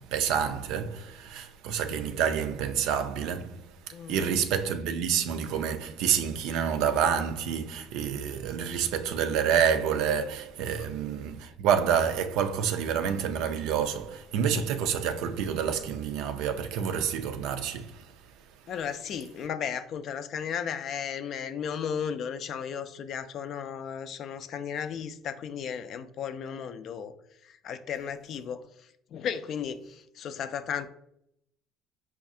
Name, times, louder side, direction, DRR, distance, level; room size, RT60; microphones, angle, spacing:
voice 1, 0.0-3.6 4.1-18.1, right 8 dB, 70° right, 0.3 m, -28 dB
voice 2, 3.9-4.3 10.8-10.9 18.7-27.1 27.4-28.6 29.1-30.9, left 7 dB, 60° left, 0.3 m, -35 dB
4.7 x 2.3 x 2.7 m
hypercardioid pair, 65°, 0 cm